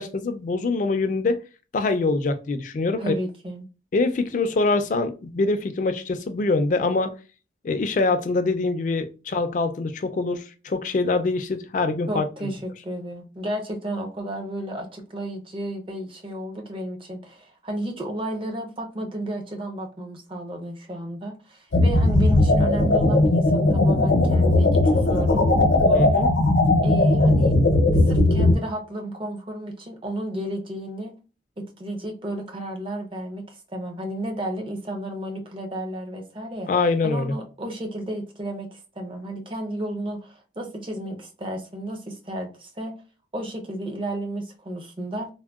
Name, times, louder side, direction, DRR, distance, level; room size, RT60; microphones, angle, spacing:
voice 1, 0.0-1.4 1.7-3.1 3.9-7.1 7.6-12.3 25.9-26.3 36.7-37.4, left 3 dB, 40° left, 8 dB, 0.3 m, -24 dB
voice 2, 3.0-3.6 12.1-26.1 26.8-27.5 28.1-31.1 31.6-36.7 37.0-42.9 43.3-45.3, right 1 dB, 30° right, 2 dB, 0.5 m, -32 dB
sound 1, 21.7-28.5, left 2 dB, 75° left, 0.6 m, -18 dB
3.5 x 2.1 x 2.3 m, 0.34 s
head